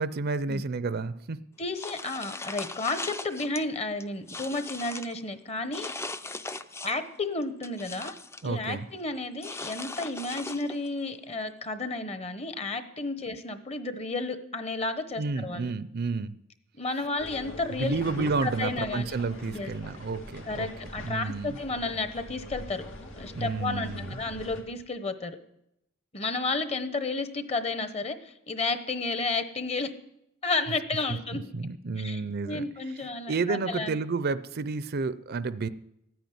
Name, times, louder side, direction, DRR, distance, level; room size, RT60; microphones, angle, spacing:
voice 1, 0.0-1.4 8.4-8.9 15.2-16.3 17.8-20.7 21.0-21.6 23.3-24.2 31.1-32.6 33.3-35.7, right 4 dB, 50° right, 14 dB, 0.6 m, -31 dB
voice 2, 1.6-5.9 6.8-8.1 8.4-15.7 16.8-18.0 18.4-19.1 19.5-19.7 20.5-22.8 23.2-25.4 26.1-29.9 30.4-31.4 32.0-34.0, left 3 dB, 30° left, 10 dB, 1.1 m, -32 dB
sound 1, 1.8-3.6 4.0-5.1 5.7-7.1 7.4-8.5 9.4-10.9, left 3 dB, 15° left, 0.5 m, -39 dB
sound 2, 17.2-24.6, left 1 dB, 85° left, 2.6 m, -42 dB
14.0 x 9.3 x 9.4 m, 0.81 s
head